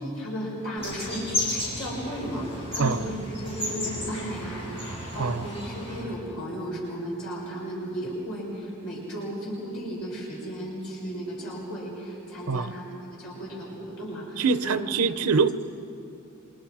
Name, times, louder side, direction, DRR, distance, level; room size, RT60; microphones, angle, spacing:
voice 1, 0.2-3.1 3.4-14.8 15.2-15.3, equal, 75° left, -4 dB, 6.4 m, -35 dB
sound 1, 0.8-6.0, left 1 dB, 25° left, 7.1 m, -33 dB
voice 2, 14.4-15.5, right 4 dB, 90° right, 12 dB, 0.7 m, -24 dB
28.5 x 25.5 x 4.8 m, 2.7 s
head